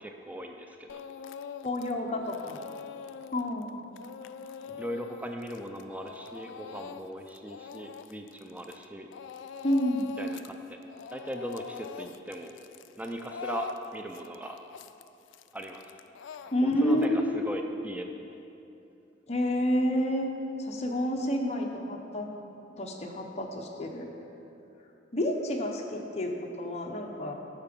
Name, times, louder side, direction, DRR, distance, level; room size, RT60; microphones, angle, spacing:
voice 1, 0.0-1.0 4.8-9.1 10.2-10.8 11.1-12.6 13.0-14.6 15.5-15.8 16.6-18.0, right 1 dB, 10° right, 4 dB, 0.4 m, -39 dB
Speech / Crying sobbing, 0.9-1.9 2.2-8.9 9.1-10.5 10.8-17.0, left 6 dB, 70° left, 0.3 m, -43 dB
voice 2, 1.6-2.6 3.3-3.8 9.6-10.1 16.5-17.5 19.3-20.3 20.6-22.3 22.8-24.1 25.1-27.3, left 1 dB, 35° left, 1 dB, 0.8 m, -29 dB
8.9 x 5.8 x 5.2 m, 2.9 s
head